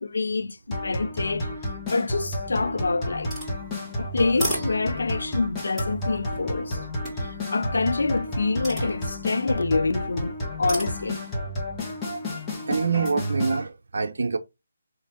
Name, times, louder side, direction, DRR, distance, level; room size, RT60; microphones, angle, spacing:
voice 1, 0.0-1.5 1.9-3.3 4.0-6.8 7.2-11.2, left 3 dB, 80° left, 0.3 m, -26 dB
sound 1, 0.7-13.6, left 1 dB, 15° left, 1.0 m, -31 dB
sound 2, 3.3-5.3 5.8-7.6 8.6-9.5 10.7-11.4, right 1 dB, ahead, 2.2 m, -36 dB
voice 2, 12.7-14.4, right 5 dB, 70° right, 0.6 m, -25 dB
3.4 x 2.7 x 3.5 m
hypercardioid pair, 165°, 0 cm